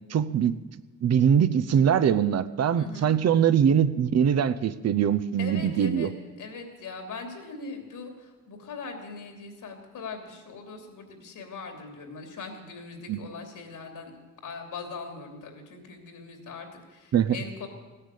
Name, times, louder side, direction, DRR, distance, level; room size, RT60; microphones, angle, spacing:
voice 1, 0.1-0.6 1.0-6.1 13.1-13.2 17.1-17.4, right 8 dB, 55° right, 12 dB, 0.7 m, -22 dB
voice 2, 2.7-3.1 5.4-6.1 6.4-14.1 14.4-17.7, left 4 dB, 80° left, 4 dB, 3.0 m, -40 dB
16.0 x 9.9 x 8.3 m, 1.2 s
wide cardioid pair, 145°, 32 cm